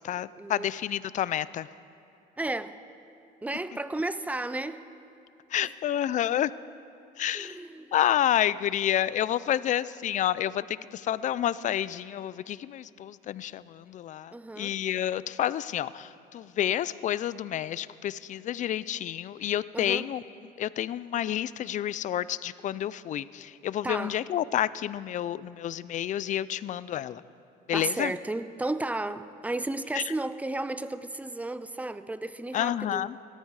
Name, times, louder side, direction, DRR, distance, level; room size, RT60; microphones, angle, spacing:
voice 1, 0.0-1.7 5.5-6.5 7.2-7.6 7.9-20.2 20.6-27.2 27.7-28.1 29.9-30.1 32.5-33.2, left 11 dB, 45° left, 0.4 m, -29 dB
voice 2, 2.4-2.8 3.4-4.9 7.3-7.9 14.3-14.7 16.6-16.7 19.7-20.0 23.8-24.2 27.7-33.1, right 2 dB, 10° right, 0.5 m, -33 dB
17.5 x 13.5 x 4.8 m
cardioid pair, 110°, 17 cm